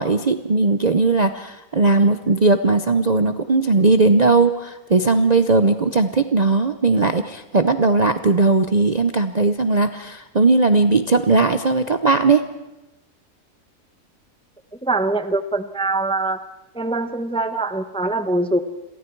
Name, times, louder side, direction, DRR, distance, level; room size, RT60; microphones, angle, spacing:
voice 1, 0.0-12.5, right 3 dB, 35° right, 8 dB, 0.7 m, -18 dB
voice 2, 14.8-16.4 16.7-18.6, right 2 dB, 5° left, 10 dB, 0.7 m, -23 dB
29.0 x 23.0 x 4.7 m, 0.99 s
omnidirectional pair, 1.7 m